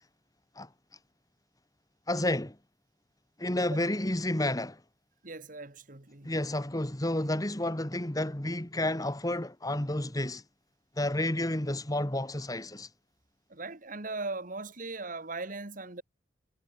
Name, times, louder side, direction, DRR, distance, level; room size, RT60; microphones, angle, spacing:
voice 1, 2.1-2.6 3.4-4.8 6.2-10.4 11.0-12.9, left 1 dB, 20° left, 1.7 m, -30 dB
voice 2, 5.2-6.3 13.5-16.0, right 3 dB, 45° right, 1.9 m, -39 dB
head